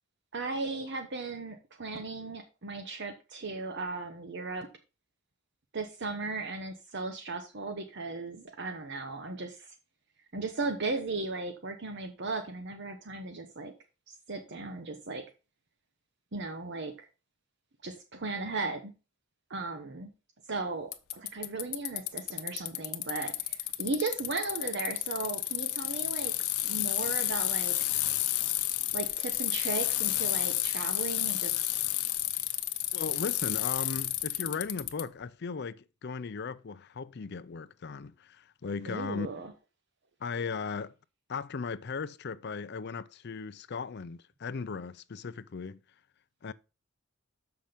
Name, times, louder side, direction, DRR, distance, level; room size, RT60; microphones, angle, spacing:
voice 1, 0.3-4.7 5.7-9.7 10.3-13.7 14.1-15.2 16.3-17.1 17.8-18.9 19.5-20.1 20.5-26.3 26.6-27.8 28.9-31.5 38.9-39.5, right 3 dB, 50° right, 0.9 m, -36 dB
Bicycle, 20.9-35.0, left 15 dB, 80° left, 0.9 m, -31 dB
voice 2, 32.9-39.3 40.2-40.9 41.3-45.8 46.4-46.5, left 5 dB, 50° left, 0.5 m, -37 dB
7.3 x 5.9 x 5.1 m
head